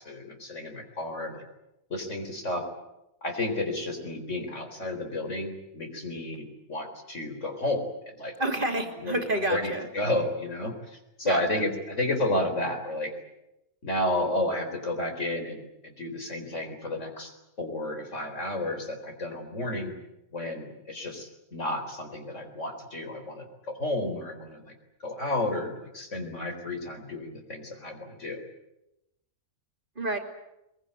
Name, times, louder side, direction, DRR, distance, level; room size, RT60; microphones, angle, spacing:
voice 1, 0.0-1.4 1.9-2.6 3.2-8.3 9.0-13.1 13.8-19.9 20.3-24.7 25.0-28.4, left 1 dB, 55° left, 5 dB, 4.5 m, -32 dB
voice 2, 8.4-9.9 11.2-11.4 30.0-30.2, right 1 dB, 35° right, 5 dB, 2.8 m, -28 dB
22.5 x 22.0 x 9.6 m, 0.90 s
omnidirectional pair, 1.5 m